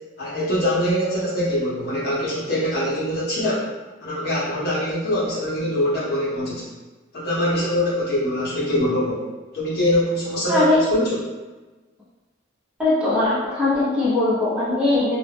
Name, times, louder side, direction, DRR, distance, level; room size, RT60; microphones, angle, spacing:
voice 1, 0.2-3.7 4.0-6.7 7.1-9.2 9.5-11.2, left 1 dB, 55° left, -7 dB, 0.8 m, -23 dB
voice 2, 10.5-10.8 12.8-15.2, left 2 dB, 5° right, -11 dB, 0.8 m, -20 dB
2.3 x 2.0 x 3.4 m, 1.2 s
head